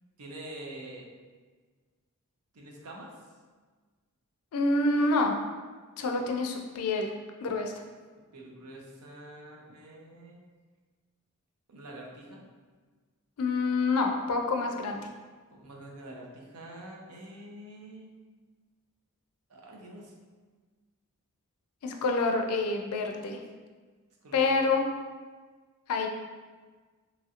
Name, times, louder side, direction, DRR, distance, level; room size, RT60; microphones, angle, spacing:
voice 1, 0.2-1.1 2.5-3.2 8.3-10.4 11.7-12.4 15.5-18.1 19.5-20.1 24.2-24.5, right 1 dB, 85° right, -1 dB, 0.6 m, -46 dB
voice 2, 4.5-5.3 6.0-7.1 7.4-7.7 13.4-15.0 21.8-23.4 24.3-24.8 25.9-26.1, left 3 dB, 80° left, 3 dB, 0.4 m, -27 dB
3.0 x 2.4 x 2.7 m, 1.4 s
head